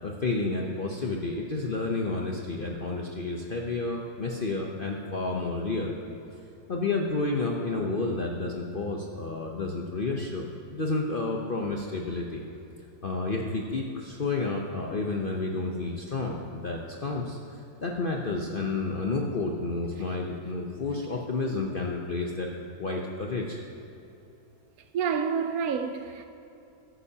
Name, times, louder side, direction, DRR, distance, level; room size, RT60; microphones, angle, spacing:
voice 1, 0.0-5.9 6.7-10.4 10.7-12.4 13.0-17.4 17.8-22.5 22.8-23.6, left 3 dB, 50° left, 0.6 m, -30 dB
voice 2, 24.9-26.3, right 6 dB, 70° right, 0.9 m, -28 dB
14.0 x 11.0 x 2.8 m
omnidirectional pair, 1.8 m